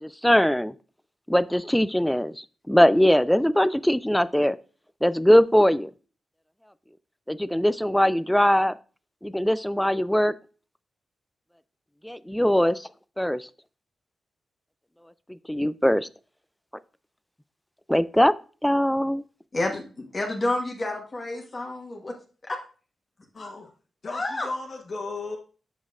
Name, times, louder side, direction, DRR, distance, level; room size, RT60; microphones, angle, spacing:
voice 1, 0.0-0.7 1.3-2.3 2.7-4.6 5.0-5.9 7.3-8.7 9.2-10.3 12.0-12.8 13.2-13.5 15.5-16.1 17.9-18.3 18.6-19.2, equal, 5° left, 16 dB, 0.3 m, -21 dB
voice 2, 19.5-19.8 20.1-22.1 22.4-22.6 24.1-24.5, left 2 dB, 35° left, 1 dB, 1.4 m, -29 dB
voice 3, 23.3-23.7 24.0-25.4, left 3 dB, 55° left, 0 dB, 1.2 m, -35 dB
7.1 x 6.0 x 2.4 m, 0.37 s
cardioid pair, 75°, 0 cm